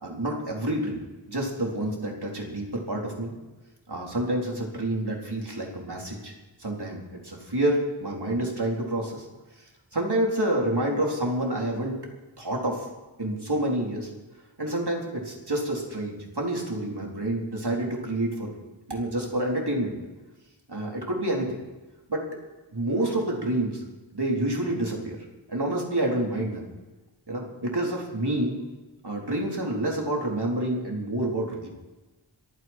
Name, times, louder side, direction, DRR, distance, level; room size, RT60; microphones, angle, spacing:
voice 1, 0.0-3.3 3.9-6.3 6.6-9.3 9.9-11.9 12.4-12.9 13.2-14.1 14.6-18.5 18.9-20.0 20.7-21.6 22.1-22.3 22.7-23.8 24.1-25.2 25.5-26.6 27.3-28.6 29.0-31.7, right 1 dB, 55° right, -1 dB, 4.2 m, -28 dB
27.0 x 9.7 x 4.6 m, 1.1 s
wide cardioid pair, 45°, 48 cm